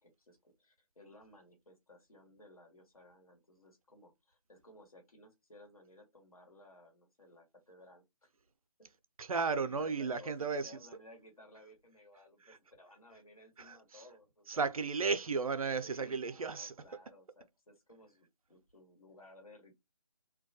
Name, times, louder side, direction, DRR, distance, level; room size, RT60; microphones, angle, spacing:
voice 1, 0.0-8.3 8.8-8.9 9.6-14.6 15.8-19.8, left 1 dB, 70° left, 1.3 m, -58 dB
voice 2, 9.2-10.8 12.4-12.6 13.6-14.1 14.5-16.7, right 4 dB, 70° right, 0.4 m, -34 dB
2.2 x 2.2 x 2.7 m
figure-of-eight pair, 155°, 19 cm